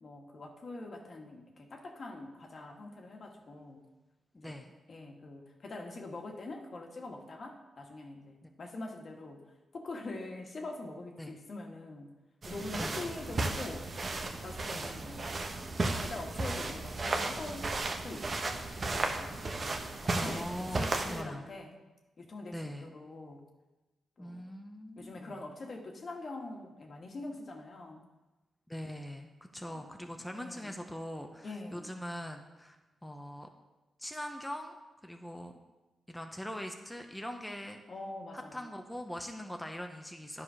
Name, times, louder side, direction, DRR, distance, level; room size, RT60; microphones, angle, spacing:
voice 1, 0.0-3.9 4.3-4.6 4.9-9.4 9.7-12.1 12.4-14.0 14.4-17.7 18.0-18.4 18.9-19.7 20.0-21.8 22.2-23.4 24.2-24.5 25.0-28.1 29.7-29.8 30.3-30.7 31.4-32.0 37.9-38.7, left 2 dB, 55° left, 2 dB, 1.5 m, -44 dB
sound 1, 12.4-21.2, right 2 dB, 50° right, 1.1 m, -35 dB
voice 2, 12.8-13.1 14.7-14.9 20.2-21.5 22.5-22.9 24.2-25.4 28.7-32.8 33.0-33.5 34.0-34.8 35.0-35.6 36.1-37.8 38.3-40.4, equal, 10° left, 4 dB, 0.9 m, -42 dB
9.7 x 4.9 x 5.7 m, 1.1 s
cardioid pair, 55°, 0 cm